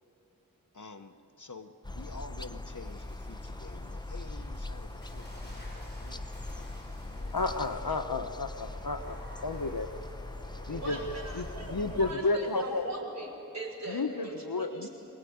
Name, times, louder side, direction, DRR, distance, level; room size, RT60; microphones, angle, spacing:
voice 1, 0.7-7.4 10.9-11.1, left 3 dB, 60° left, 8 dB, 1.1 m, -49 dB
sound 1, 1.8-12.1, left 2 dB, 10° left, 0.7 m, -41 dB
Water / Splash splatter, 2.8-12.8, equal, 30° left, 7.6 m, -54 dB
voice 2, 7.3-9.9 10.7-11.0 11.3-11.5 11.7-12.8 13.9-14.9, left 3 dB, 85° left, 8 dB, 1.1 m, -32 dB
voice 3, 10.6-14.9, right 2 dB, 50° right, -2 dB, 5.6 m, -40 dB
25.0 x 18.5 x 9.5 m, 3.0 s
wide cardioid pair, 40°, 35 cm